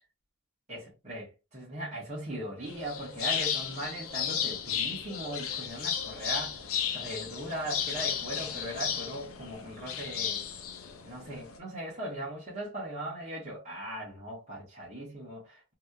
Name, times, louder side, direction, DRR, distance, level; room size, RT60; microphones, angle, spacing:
voice 1, 0.7-6.6 6.9-10.4 11.0-15.7, right 1 dB, 30° right, 1.3 m, -39 dB
sound 1, 2.7-11.6, left 8 dB, 80° left, 0.6 m, -34 dB
3.1 x 2.9 x 2.3 m
head